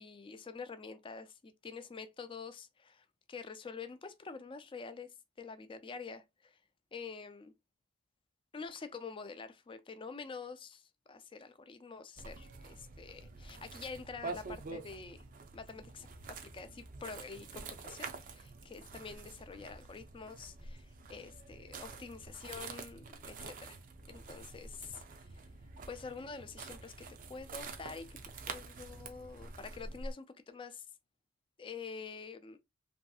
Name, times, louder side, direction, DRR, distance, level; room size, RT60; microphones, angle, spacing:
voice 1, 0.0-6.6 6.9-7.5 8.5-15.2 15.5-23.8 24.1-25.4 25.9-28.2 28.5-30.9 31.6-32.6, left 5 dB, 25° left, 0.3 m, -47 dB
sound 1, 12.2-30.1, right 3 dB, 40° right, 0.4 m, -47 dB
3.1 x 2.6 x 2.3 m
head